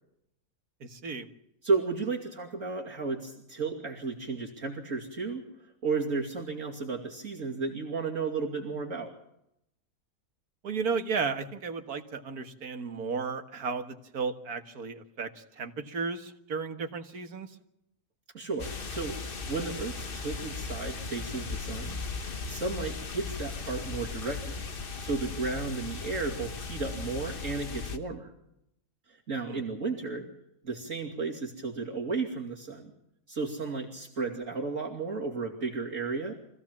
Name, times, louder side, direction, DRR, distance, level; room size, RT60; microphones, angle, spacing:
voice 1, 0.8-1.3 10.6-17.5 29.4-29.6, right 5 dB, 70° right, 7 dB, 2.1 m, -34 dB
voice 2, 1.6-5.4 5.8-9.1 18.3-22.0 22.2-24.6 25.0-28.3 29.1-30.3 30.6-32.9 33.3-36.3, right 4 dB, 55° right, -1 dB, 3.0 m, -33 dB
sound 1, 18.6-28.0, left 4 dB, 35° left, 1.3 m, -37 dB
24.5 x 16.5 x 7.4 m, 0.80 s
omnidirectional pair, 1.7 m